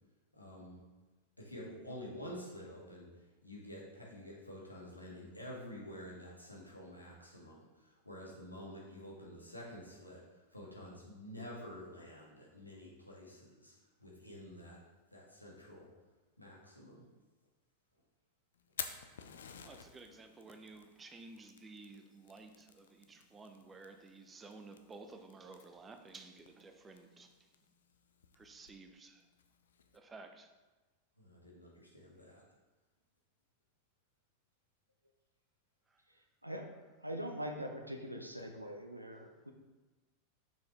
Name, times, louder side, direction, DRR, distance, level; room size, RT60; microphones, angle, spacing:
voice 1, 0.3-0.8 1.4-3.1 3.4-10.2 10.5-13.7 14.0-14.8 15.1-15.9 16.4-17.1 31.2-32.4, left 1 dB, 85° left, -4 dB, 1.8 m, -49 dB
Fire, 18.5-30.0, left 7 dB, 65° left, 0.5 m, -52 dB
voice 2, 19.6-27.3 28.3-29.3 29.9-30.5, right 3 dB, 15° right, 6 dB, 0.7 m, -53 dB
voice 3, 37.0-39.5, equal, 90° right, 3 dB, 0.6 m, -42 dB
7.1 x 6.0 x 3.3 m, 1.2 s
figure-of-eight pair, 90°, 0 cm